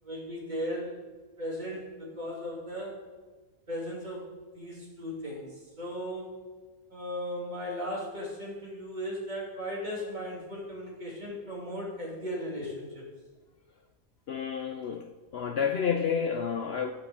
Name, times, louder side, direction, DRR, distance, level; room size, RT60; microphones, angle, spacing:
voice 1, 0.0-1.0 1.4-2.9 3.7-6.3 6.9-13.0, equal, 30° right, 3.1 m, -37 dB
voice 2, 14.3-16.9, left 7 dB, 60° left, 0.7 m, -30 dB
11.5 x 6.4 x 7.0 m
omnidirectional pair, 1.5 m